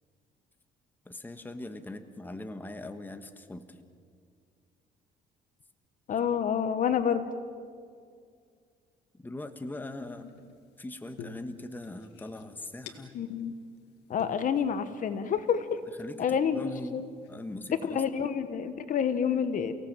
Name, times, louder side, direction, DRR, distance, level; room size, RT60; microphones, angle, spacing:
voice 1, 1.0-3.8 9.2-10.3 10.8-13.2 16.0-17.0 17.3-18.3, left 2 dB, 10° left, 8 dB, 1.4 m, -41 dB
voice 2, 6.1-7.3 13.1-13.5 14.1-15.7 16.2-17.1 17.9-19.8, left 7 dB, 50° left, 11 dB, 1.4 m, -28 dB
sound 1, 9.8-10.7 11.2-13.4 13.8-13.9 14.2-15.7 16.4-16.5 17.2-17.7, left 6 dB, 80° left, 2.1 m, -49 dB
29.5 x 17.5 x 7.6 m, 2.3 s
cardioid pair, 110°, 17 cm